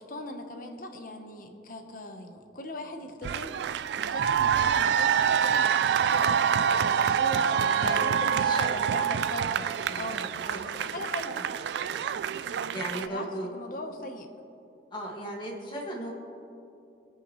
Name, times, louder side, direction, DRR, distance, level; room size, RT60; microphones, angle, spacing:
voice 1, 0.0-3.5 4.0-11.5 13.0-13.3 13.5-14.3, left 1 dB, 50° left, 5 dB, 1.0 m, -40 dB
sound 1, 3.2-13.1, right 8 dB, 70° right, 0.3 m, -26 dB
voice 2, 8.4-9.2 9.9-10.6 11.7-12.2 12.7-13.5 14.9-16.1, right 1 dB, 25° left, -2 dB, 1.8 m, -38 dB
21.0 x 8.6 x 3.1 m, 2.7 s
head